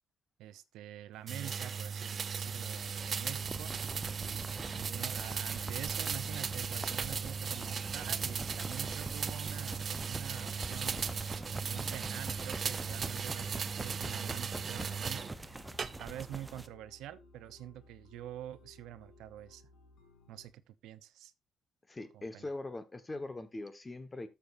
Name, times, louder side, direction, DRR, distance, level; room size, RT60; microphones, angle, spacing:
voice 1, 0.4-3.7 4.2-4.4 4.8-11.0 11.6-15.5 16.0-19.6 20.3-21.3 22.1-22.5, right 13 dB, 90° right, 0.7 m, -47 dB
sound 1, 1.3-15.3 15.8-16.3, right 6 dB, 45° right, 0.6 m, -37 dB
sound 2, 2.3-20.5, left 5 dB, 85° left, 1.7 m, -60 dB
sound 3, 3.0-16.7, right 2 dB, 15° right, 0.8 m, -45 dB
voice 2, 21.9-24.3, left 2 dB, 20° left, 1.3 m, -41 dB
13.0 x 7.0 x 2.6 m
cardioid pair, 90°, 0 cm